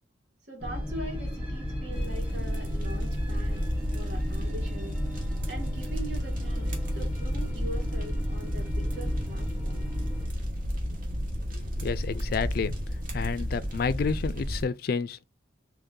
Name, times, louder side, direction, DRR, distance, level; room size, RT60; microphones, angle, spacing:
voice 1, 0.5-3.6 3.9-5.0 5.5-9.8, right 1 dB, 70° right, 1.7 m, -42 dB
sound 1, 0.6-10.3, equal, 5° right, 1.2 m, -34 dB
sound 2, 1.9-14.6, equal, 45° right, 1.1 m, -32 dB
voice 2, 11.8-12.8 13.1-15.2, left 5 dB, 55° left, 0.3 m, -30 dB
3.1 x 2.7 x 3.6 m
head